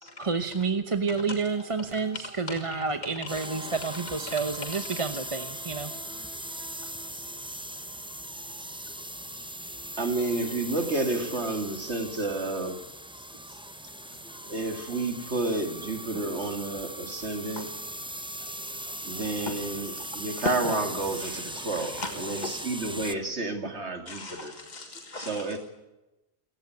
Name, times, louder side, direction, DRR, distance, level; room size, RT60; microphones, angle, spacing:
voice 1, 0.2-5.9, right 4 dB, 30° right, 8 dB, 1.0 m, -29 dB
sound 1, 1.5-7.1, right 1 dB, 65° right, 2.1 m, -50 dB
sound 2, 3.3-23.1, right 1 dB, 5° right, 0.7 m, -39 dB
voice 2, 6.5-7.9 8.1-10.0 14.4-14.5 17.2-17.7 18.4-19.0 19.4-20.1 20.4-20.7 21.5-22.6 24.1-25.6, left 2 dB, 40° left, 5 dB, 1.8 m, -40 dB
voice 3, 10.0-12.8 13.5-13.6 14.2-17.7 18.4-18.5 18.8-24.5 25.2-25.6, right 2 dB, 85° right, 5 dB, 3.0 m, -31 dB
28.0 x 15.5 x 9.5 m, 1.0 s
omnidirectional pair, 1.1 m